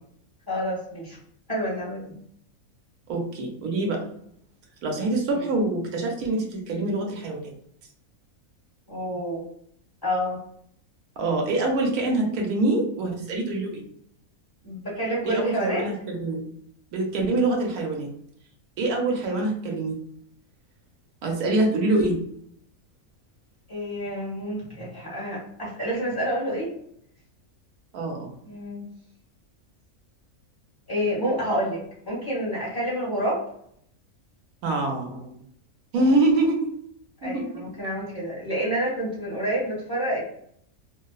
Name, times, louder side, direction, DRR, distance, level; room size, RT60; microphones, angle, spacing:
voice 1, 0.5-1.2 1.5-2.2 5.3-5.5 8.9-9.5 10.0-10.4 14.6-15.8 23.7-26.7 28.4-28.8 30.9-33.4 36.0-36.1 37.2-40.2, equal, 15° left, -8 dB, 1.0 m, -28 dB
voice 2, 3.1-4.0 4.8-7.5 11.2-13.9 15.2-16.4 16.9-18.1 18.8-19.9 21.2-22.2 27.9-28.3 34.6-35.4 35.9-36.7 37.2-37.4, right 2 dB, 80° right, 1 dB, 1.1 m, -25 dB
2.8 x 2.0 x 2.3 m, 0.68 s
omnidirectional pair, 1.5 m